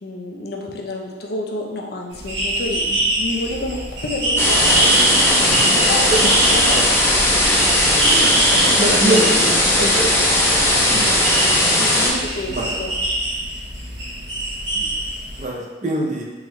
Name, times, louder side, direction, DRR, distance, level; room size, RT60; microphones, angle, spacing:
voice 1, 0.0-6.1 6.4-6.9 7.3-7.7 8.0-9.2 11.6-12.9, left 2 dB, 60° left, 0 dB, 0.5 m, -29 dB
sound 1, 2.1-15.4, right 1 dB, 85° right, 1.1 m, -24 dB
sound 2, 4.4-12.1, left 1 dB, 15° left, 0.6 m, -17 dB
voice 2, 8.8-10.1 10.9-11.1 12.5-12.8 14.7-14.8 15.4-16.2, right 1 dB, 40° right, -2 dB, 0.6 m, -23 dB
3.8 x 3.0 x 3.1 m, 1.3 s
head